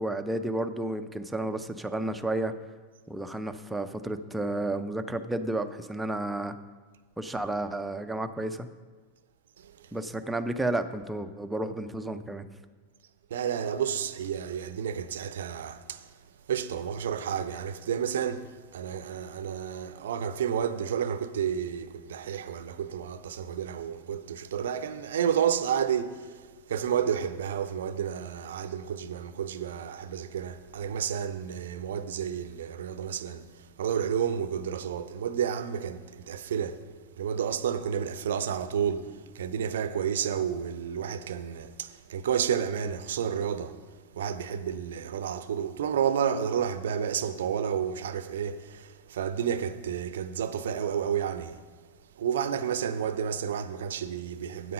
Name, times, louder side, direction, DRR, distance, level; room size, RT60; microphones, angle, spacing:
voice 1, 0.0-2.5 3.1-6.6 7.2-8.7 9.9-12.5, right 1 dB, 5° right, 0.6 m, -31 dB
voice 2, 9.6-9.9 13.3-16.2 16.5-36.8 37.2-43.8 44.1-51.6 52.2-54.7, right 8 dB, 60° right, 0.6 m, -31 dB
9.4 x 8.3 x 5.3 m
figure-of-eight pair, 90°, 0 cm